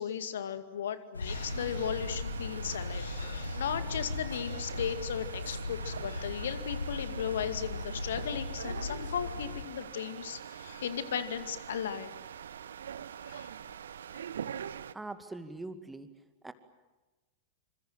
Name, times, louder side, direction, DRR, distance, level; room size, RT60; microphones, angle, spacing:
voice 1, 0.0-12.1 13.2-13.5 14.1-14.2, left 8 dB, 65° left, 10 dB, 2.2 m, -36 dB
sound 1, 1.1-9.6, left 3 dB, 80° left, 1.8 m, -38 dB
sound 2, 1.3-14.9, right 8 dB, 65° right, 0.8 m, -44 dB
voice 2, 14.9-16.1 16.4-16.5, right 2 dB, 10° right, 9 dB, 2.3 m, -42 dB
27.5 x 26.5 x 7.6 m, 1.1 s
figure-of-eight pair, 90°, 0 cm